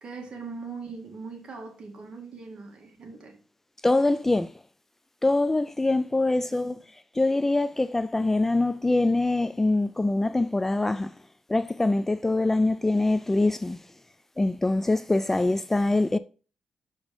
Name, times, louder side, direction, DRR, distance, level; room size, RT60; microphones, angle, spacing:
voice 1, 0.0-3.4 6.5-6.8, right 4 dB, 50° right, 2.2 m, -41 dB
voice 2, 3.8-4.5 5.2-11.1 11.5-13.8 14.4-16.2, left 2 dB, 15° left, 0.3 m, -24 dB
6.3 x 5.0 x 5.2 m
cardioid pair, 110°, 2 cm